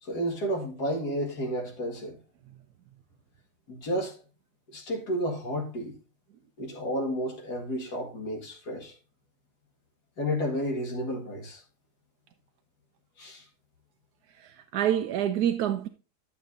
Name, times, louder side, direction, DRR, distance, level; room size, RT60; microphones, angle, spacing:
voice 1, 0.0-2.2 3.7-4.2 4.7-6.0 6.6-8.9 10.2-11.6 13.2-13.4, equal, 75° left, 2.5 m, -31 dB
voice 2, 14.4-15.9, right 10 dB, 75° right, 1.1 m, -27 dB
12.0 x 7.0 x 2.6 m
omnidirectional pair, 1.7 m